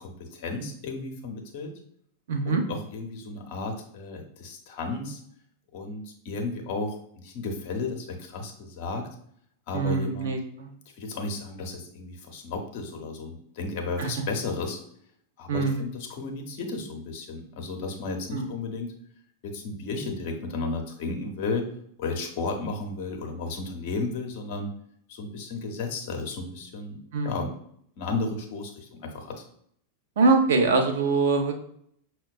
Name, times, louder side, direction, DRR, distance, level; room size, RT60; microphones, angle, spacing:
voice 1, 0.0-1.7 2.4-5.2 5.7-9.1 9.7-10.3 11.0-14.8 15.4-18.9 19.4-21.7 22.0-24.7 25.1-27.5 28.0-29.4, left 3 dB, 50° left, 3 dB, 0.7 m, -33 dB
voice 2, 2.3-2.6 9.7-10.7 14.0-14.1 15.5-15.8 18.3-18.4 27.1-27.4 30.2-31.5, right 3 dB, 60° right, 3 dB, 0.6 m, -23 dB
5.7 x 2.2 x 2.3 m, 0.67 s
figure-of-eight pair, 90°, 0 cm